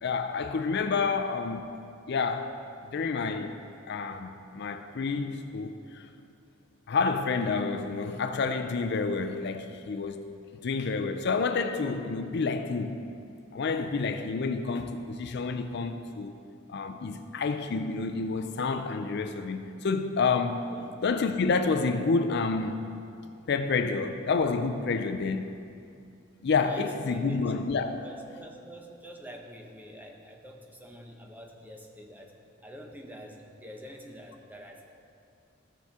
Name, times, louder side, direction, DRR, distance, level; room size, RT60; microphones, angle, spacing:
voice 1, 0.0-1.8 2.1-2.6 2.9-3.6 3.9-6.1 6.9-10.3 10.6-13.0 13.5-16.4 16.7-20.7 21.0-22.8 23.5-25.5 26.4-28.0, left 4 dB, 55° left, 0.4 m, -29 dB
voice 2, 26.6-27.5 28.0-32.3 32.6-34.9, equal, 10° right, 0.8 m, -46 dB
14.5 x 6.6 x 3.6 m
head